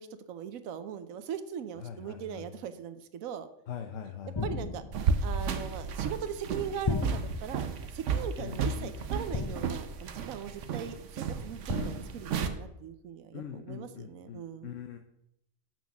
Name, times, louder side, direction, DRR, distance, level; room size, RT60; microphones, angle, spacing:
voice 1, 0.0-3.5 4.4-4.8 5.2-14.7, right 8 dB, 85° right, 11 dB, 1.1 m, -40 dB
voice 2, 1.8-2.5 3.7-4.3 8.4-8.9 13.3-15.0, left 8 dB, 70° left, 5 dB, 1.1 m, -42 dB
sound 1, 4.3-5.2 6.8-7.7 9.3-10.0 11.7-12.3, left 4 dB, 45° left, 0.3 m, -35 dB
sound 2, 4.9-12.5, right 5 dB, 65° right, 1.0 m, -33 dB
7.2 x 6.1 x 5.9 m, 0.80 s
omnidirectional pair, 1.4 m